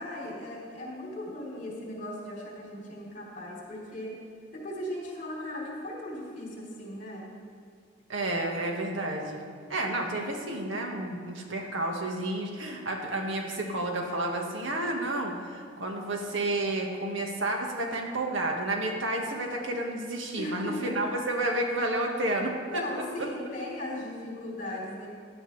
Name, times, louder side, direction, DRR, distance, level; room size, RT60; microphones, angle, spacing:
voice 1, 0.0-4.2 4.5-7.3 20.4-21.1 22.2-25.1, left 1 dB, 45° left, -4 dB, 3.9 m, -38 dB
voice 2, 8.1-9.4 9.7-23.3, right 1 dB, 85° right, 1 dB, 1.7 m, -31 dB
16.5 x 11.5 x 3.4 m, 2.1 s
head